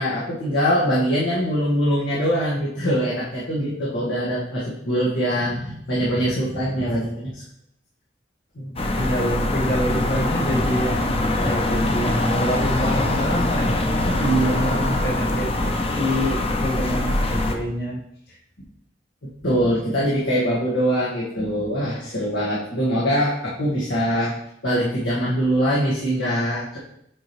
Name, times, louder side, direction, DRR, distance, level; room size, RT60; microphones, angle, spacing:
voice 1, 0.0-7.4 8.5-9.1 14.0-15.0 19.4-24.3 24.6-26.8, equal, 85° left, -7 dB, 1.6 m, -23 dB
sound 1, 8.8-17.6, left 1 dB, 30° left, 0.7 m, -23 dB
voice 2, 8.9-13.9 14.5-14.7 15.0-18.0 18.3-18.4, equal, 60° left, -4 dB, 2.2 m, -27 dB
8.3 x 4.7 x 3.1 m, 0.74 s
head